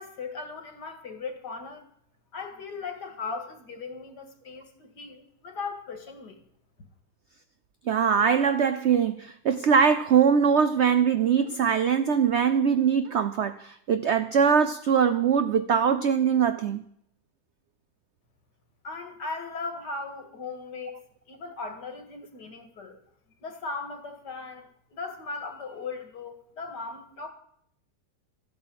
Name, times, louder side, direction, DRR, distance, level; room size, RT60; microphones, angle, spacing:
voice 1, 0.0-1.8 2.3-6.4 18.8-21.0 21.3-23.0 23.4-27.3, left 4 dB, 75° left, 2.3 m, -38 dB
voice 2, 7.9-16.8, right 7 dB, 70° right, 0.6 m, -22 dB
13.5 x 8.1 x 7.6 m
omnidirectional pair, 1.8 m